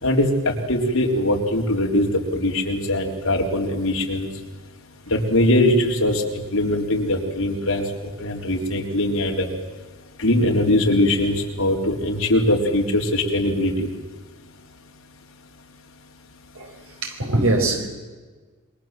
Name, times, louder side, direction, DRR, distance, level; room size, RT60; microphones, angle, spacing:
voice 1, 0.0-4.3 5.1-7.8 8.2-9.5 10.2-13.9, left 1 dB, 70° left, 1 dB, 4.0 m, -21 dB
voice 2, 17.0-17.9, right 2 dB, 75° right, 3 dB, 4.7 m, -21 dB
27.0 x 23.0 x 7.7 m, 1.4 s
head